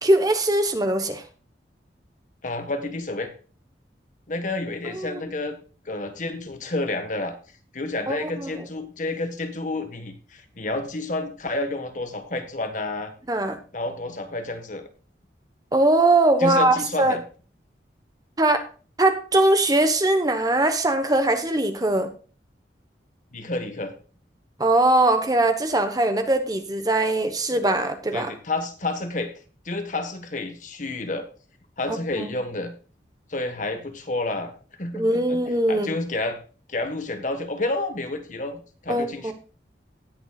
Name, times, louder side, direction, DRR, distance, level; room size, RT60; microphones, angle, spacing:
voice 1, 0.0-1.2 4.9-5.2 8.1-8.5 13.3-13.6 15.7-17.2 18.4-18.7 19.0-22.1 24.6-28.3 31.9-32.4 34.9-35.9 38.9-39.3, right 2 dB, 20° right, 7 dB, 1.1 m, -21 dB
voice 2, 2.4-3.3 4.3-5.6 5.8-7.3 7.7-13.1 13.7-14.9 16.4-17.2 23.3-23.9 28.1-29.3 29.6-31.3 31.8-32.7 33.3-34.5 34.8-35.4 35.7-36.4 36.7-39.3, left 2 dB, 45° left, 7 dB, 1.4 m, -30 dB
18.0 x 7.1 x 2.4 m, 0.37 s
head